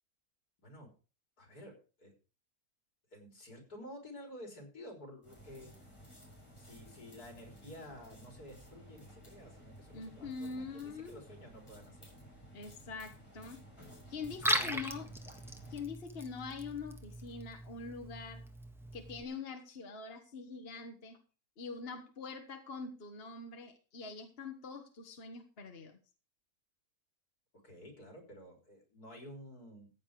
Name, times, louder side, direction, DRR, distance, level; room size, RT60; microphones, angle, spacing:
voice 1, 0.6-0.9 1.4-2.1 3.1-5.7 6.6-12.1 14.5-14.8 27.6-29.9, equal, 80° left, 3 dB, 4.6 m, -51 dB
sound 1, 5.2-15.8, right 1 dB, 20° left, 6.6 m, -55 dB
voice 2, 9.9-11.2 12.5-13.6 14.1-15.0 15.7-18.4 18.9-21.2 21.6-26.0, left 4 dB, 40° left, 5 dB, 1.6 m, -44 dB
Liquid, 14.2-19.2, equal, ahead, 1.5 m, -38 dB
15.0 x 8.8 x 4.9 m, 0.35 s
omnidirectional pair, 1.6 m